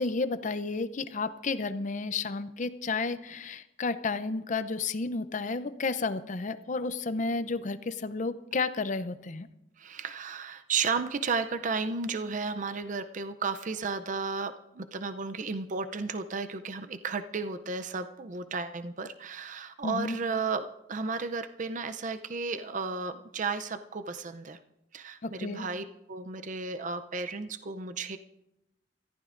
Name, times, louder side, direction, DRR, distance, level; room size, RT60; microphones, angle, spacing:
voice 1, 0.0-9.5 19.8-20.2 25.2-25.7, left 3 dB, 40° left, 12 dB, 0.6 m, -32 dB
voice 2, 9.8-24.6 24.9-28.2, right 4 dB, 40° right, 10 dB, 0.5 m, -33 dB
27.0 x 14.5 x 2.5 m, 0.91 s
head